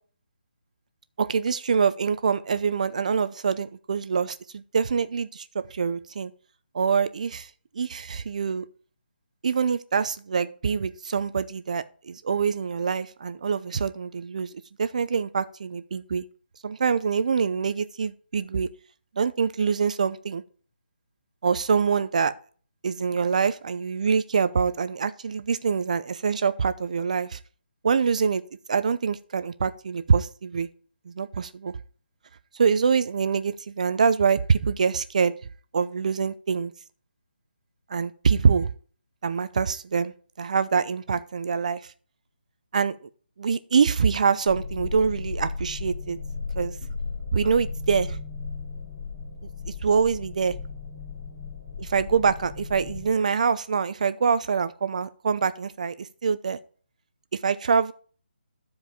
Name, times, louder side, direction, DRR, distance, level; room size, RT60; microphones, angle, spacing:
voice 1, 1.2-6.3 6.7-7.5 7.7-8.6 9.4-14.5 14.8-16.2 16.6-18.7 19.2-20.4 21.4-22.3 22.8-27.4 27.8-28.4 28.7-30.7 31.1-31.7 32.5-35.3 35.7-36.7 37.9-38.7 39.2-41.8 42.7-43.0 43.4-46.2 46.6-46.7 47.3-48.2 49.8-50.6 51.8-56.6 57.4-57.9, right 6 dB, 45° right, 0.6 m, -25 dB
sound 1, 44.5-53.1, left 4 dB, 25° left, 2.7 m, -35 dB
12.5 x 4.8 x 4.9 m
hypercardioid pair, 170°, 6 cm